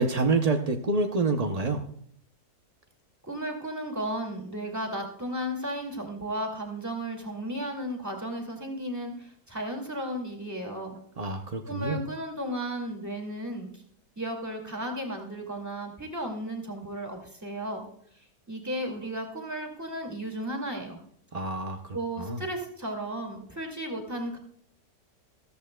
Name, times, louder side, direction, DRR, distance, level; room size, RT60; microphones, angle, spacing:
voice 1, 0.0-1.8 11.2-12.0 21.3-22.4, right 3 dB, 50° right, 4 dB, 0.4 m, -27 dB
voice 2, 3.3-11.0 11.7-13.8 14.2-17.9 18.5-21.0 21.9-24.4, right 1 dB, 10° right, 2 dB, 2.1 m, -34 dB
14.5 x 13.5 x 2.2 m, 0.63 s
omnidirectional pair, 1.8 m